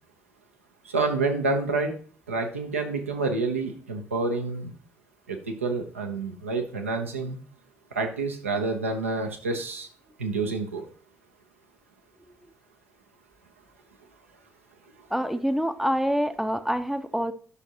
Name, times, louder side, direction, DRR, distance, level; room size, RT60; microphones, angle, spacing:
voice 1, 0.8-1.9 2.3-4.7 5.3-7.4 7.9-9.9 10.2-10.9, right 3 dB, 85° right, 3 dB, 0.8 m, -28 dB
voice 2, 15.1-17.3, equal, 5° right, 10 dB, 0.7 m, -26 dB
9.6 x 6.2 x 2.9 m, 0.42 s
figure-of-eight pair, 45°, 7 cm